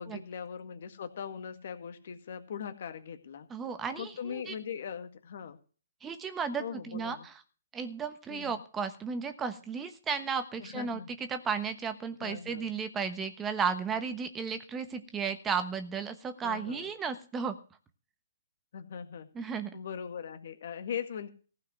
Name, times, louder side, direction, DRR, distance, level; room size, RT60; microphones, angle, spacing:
voice 1, 0.0-3.5 4.0-5.6 6.6-7.3 8.3-8.6 10.6-11.1 12.2-12.7 16.4-16.9 18.7-21.3, left 7 dB, 60° left, 9 dB, 1.8 m, -40 dB
voice 2, 3.5-4.5 6.0-7.3 7.7-17.5 19.3-19.7, right 6 dB, 15° right, 10 dB, 1.2 m, -34 dB
15.5 x 5.8 x 7.9 m, 0.38 s
hypercardioid pair, 135°, 0 cm